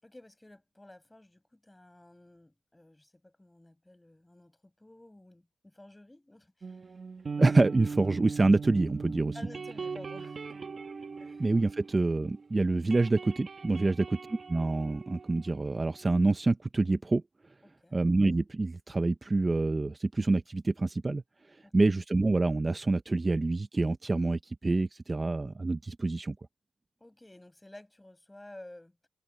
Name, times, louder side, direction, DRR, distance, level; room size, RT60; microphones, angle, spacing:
voice 1, 0.0-7.0 9.3-10.7 11.2-11.7 13.8-14.0 17.6-18.0 21.6-21.9 27.0-29.0, left 1 dB, 10° left, 7.3 m, -53 dB
sound 1, 6.6-12.4 12.7-16.1, right 5 dB, 40° right, 1.5 m, -40 dB
voice 2, 7.4-9.3 11.4-14.2 14.5-17.2 17.9-21.2 21.5-26.4, right 3 dB, 25° right, 0.6 m, -27 dB
cardioid pair, 105°, 0 cm